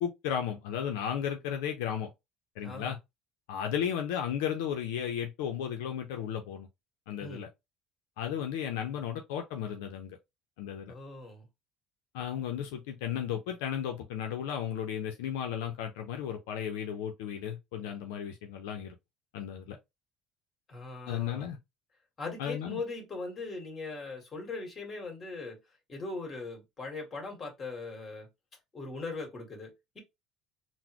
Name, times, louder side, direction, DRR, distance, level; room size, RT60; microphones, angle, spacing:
voice 1, 0.0-2.1 2.6-3.0 3.5-6.7 7.1-7.5 8.2-10.2 10.6-10.9 12.1-19.0 19.3-19.8 21.1-21.6 22.4-22.8, left 9 dB, 90° left, 0.5 m, -34 dB
voice 2, 2.6-2.9 7.2-7.5 10.9-11.5 20.7-21.5 22.2-25.6 25.9-28.3 28.7-30.0, left 3 dB, 30° left, 1.7 m, -40 dB
3.9 x 2.0 x 2.9 m
supercardioid pair, 100°, 0 cm